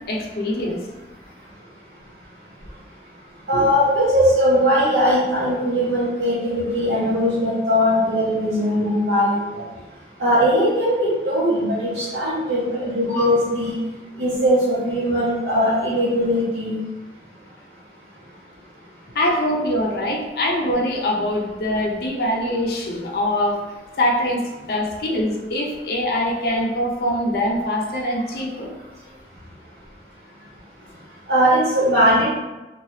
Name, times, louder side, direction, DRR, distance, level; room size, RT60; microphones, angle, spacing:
voice 1, 0.1-0.8 3.5-3.7 19.1-23.6 24.0-24.4 24.7-28.7, left 1 dB, 60° left, 0 dB, 0.5 m, -23 dB
voice 2, 3.5-9.6 10.2-13.8 14.2-16.8 31.3-32.3, equal, 75° right, -9 dB, 0.8 m, -19 dB
3.1 x 2.3 x 2.7 m, 1.1 s
head